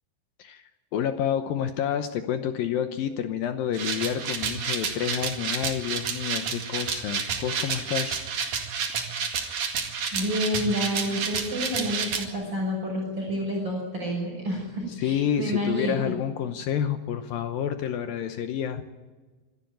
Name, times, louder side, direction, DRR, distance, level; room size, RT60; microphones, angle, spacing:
voice 1, 0.9-8.2 14.9-18.8, left 9 dB, 75° left, 8 dB, 2.2 m, -29 dB
sound 1, 3.7-12.2, right 6 dB, 50° right, 3.0 m, -30 dB
voice 2, 10.1-16.1, equal, 25° right, 0 dB, 6.4 m, -29 dB
26.5 x 12.5 x 9.2 m, 1.3 s
omnidirectional pair, 5.0 m